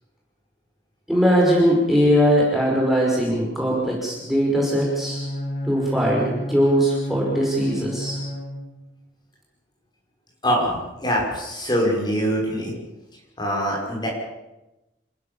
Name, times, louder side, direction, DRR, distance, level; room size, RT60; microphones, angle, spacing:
voice 1, 1.1-5.3 5.6-8.2, equal, ahead, -3 dB, 5.4 m, -20 dB
Bowed string instrument, 4.7-8.9, left 1 dB, 45° left, 7.8 m, -31 dB
voice 2, 10.4-12.7 13.4-14.1, equal, 25° left, -2 dB, 6.3 m, -23 dB
28.5 x 15.5 x 7.3 m, 0.99 s
head